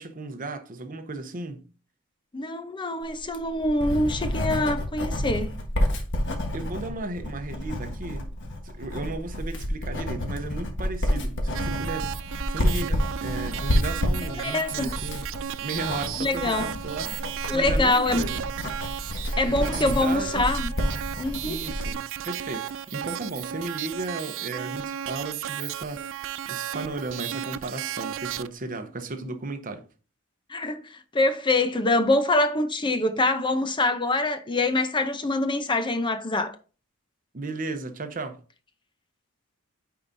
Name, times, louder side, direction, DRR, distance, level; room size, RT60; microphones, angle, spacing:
voice 1, 0.0-1.6 6.5-8.3 8.6-12.1 12.5-15.3 15.6-17.1 17.5-18.4 19.4-20.4 21.4-29.9 37.3-38.4, right 3 dB, 40° right, 0.8 m, -35 dB
voice 2, 2.3-5.6 14.4-14.9 16.2-16.8 17.5-18.2 19.4-20.7 21.2-21.6 30.5-36.6, left 2 dB, 25° left, 0.6 m, -25 dB
Writing, 3.2-21.9, left 1 dB, 60° left, 1.4 m, -29 dB
sound 1, 11.5-28.5, right 10 dB, 60° right, 0.4 m, -34 dB
9.0 x 4.7 x 2.7 m
head